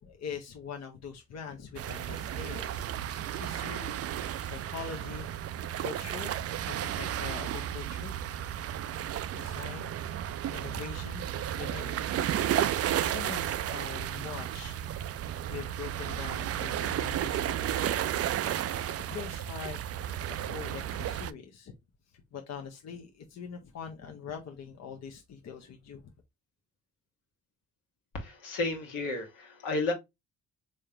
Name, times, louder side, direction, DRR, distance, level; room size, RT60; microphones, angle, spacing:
voice 1, 0.0-5.3 5.8-6.3 6.7-8.1 9.3-9.9 10.5-12.2 12.6-14.8 15.1-18.2 18.5-18.7 19.1-19.8 20.4-21.7 22.3-26.0, left 6 dB, 55° left, 0.8 m, -43 dB
sound 1, 1.8-21.3, right 11 dB, 50° right, 0.4 m, -33 dB
voice 2, 28.1-29.9, left 2 dB, 80° left, 1.5 m, -32 dB
3.7 x 3.2 x 2.8 m
supercardioid pair, 65°, 32 cm